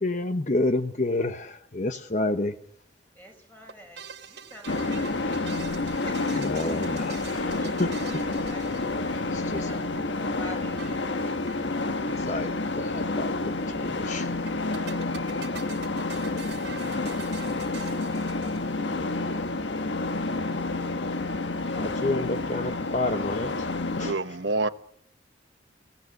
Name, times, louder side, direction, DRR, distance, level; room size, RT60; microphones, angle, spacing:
voice 1, 0.0-2.6 6.3-8.2 9.1-9.7 12.2-14.3 21.7-23.7 24.0-24.4, left 2 dB, 40° left, 0.9 m, -30 dB
voice 2, 3.1-6.4 7.0-7.1 7.5-8.1 8.4-11.3 24.0-24.4, left 1 dB, 10° left, 5.6 m, -49 dB
sound 1, 3.7-9.5 10.8-11.6 11.9-12.0 12.2-12.3 14.5-19.0, right 6 dB, 65° right, 1.3 m, -44 dB
sound 2, 4.6-24.1, left 2 dB, 80° left, 1.3 m, -29 dB
voice 3, 24.0-24.7, right 3 dB, 85° right, 1.1 m, -27 dB
21.0 x 16.5 x 9.5 m
head